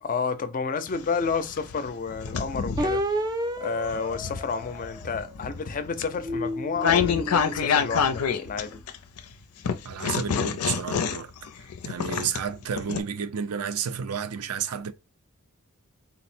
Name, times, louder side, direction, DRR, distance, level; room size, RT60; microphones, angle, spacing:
voice 1, 0.0-3.0 3.6-8.8, left 5 dB, 40° left, 0.4 m, -30 dB
sound 1, 0.9-3.0 3.6-9.2 9.6-13.0, left 7 dB, 85° left, 0.5 m, -27 dB
sound 2, 2.8-5.5 6.0-8.5, equal, 15° right, 0.4 m, -32 dB
voice 2, 9.8-11.3 11.8-14.9, right 7 dB, 80° right, 0.5 m, -31 dB
3.9 x 2.0 x 4.2 m
head